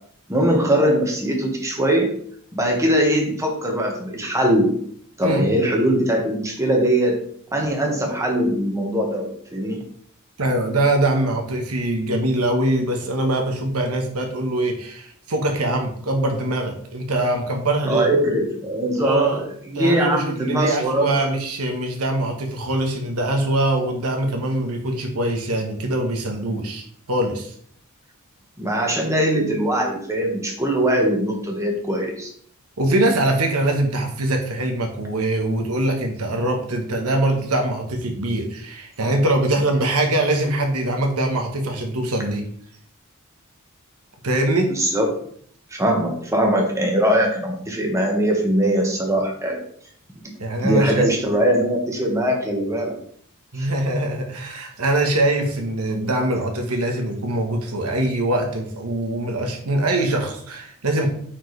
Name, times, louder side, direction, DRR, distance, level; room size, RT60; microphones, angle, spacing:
voice 1, 0.3-2.2 2.5-4.7 5.2-7.2 7.5-9.8 17.9-19.4 19.7-21.2 28.6-32.3 44.7-45.2 45.7-49.6 50.6-52.9 53.5-53.7, right 1 dB, 15° right, 0 dB, 1.4 m, -21 dB
voice 2, 10.4-18.1 19.0-19.4 19.7-27.5 32.8-42.5 44.2-44.7 50.4-51.0 53.5-61.1, right 1 dB, 85° right, 3 dB, 1.2 m, -23 dB
8.8 x 4.5 x 3.3 m, 0.62 s
head